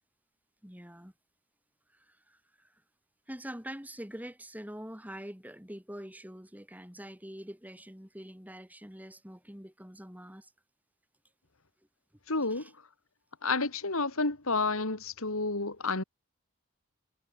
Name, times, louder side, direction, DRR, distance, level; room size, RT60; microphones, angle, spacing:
voice 1, 0.6-1.1 1.9-2.8 3.3-10.5 12.5-12.7, equal, 5° right, 2.9 m, -45 dB
voice 2, 12.3-12.7 13.4-16.0, left 3 dB, 75° left, 2.8 m, -30 dB
head